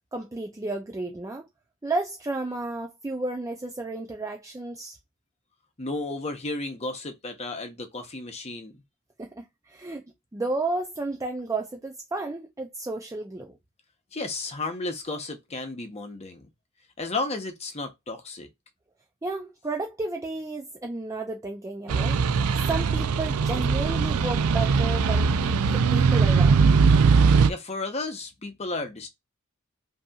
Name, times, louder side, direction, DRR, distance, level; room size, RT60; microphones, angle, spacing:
voice 1, 0.1-1.5 1.8-5.0 9.2-10.0 10.3-13.5 19.2-22.4 22.7-26.6, right 2 dB, 15° right, 0.4 m, -32 dB
voice 2, 5.8-8.8 14.1-16.5 17.0-18.5 27.5-29.1, left 2 dB, 30° left, 0.8 m, -33 dB
sound 1, 21.9-27.5, right 5 dB, 90° right, 0.4 m, -20 dB
5.3 x 2.7 x 2.4 m
head